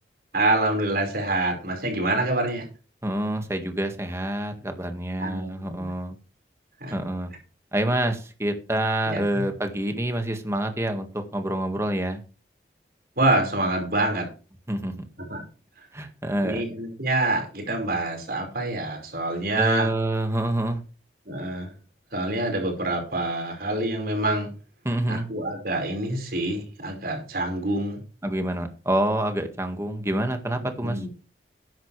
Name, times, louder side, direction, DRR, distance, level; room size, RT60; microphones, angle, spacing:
voice 1, 0.3-2.6 5.2-5.9 6.8-6.9 9.1-9.4 13.2-14.3 15.3-15.4 16.4-19.9 21.3-21.7 22.1-24.5 25.1-28.0 30.8-31.1, right 2 dB, 55° right, 2 dB, 5.1 m, -26 dB
voice 2, 3.0-6.1 6.9-7.3 7.7-12.2 14.7-14.9 15.9-16.6 19.6-20.8 24.9-25.3 28.2-31.0, right 1 dB, 15° right, 6 dB, 1.8 m, -27 dB
13.0 x 11.0 x 3.4 m, 0.35 s
head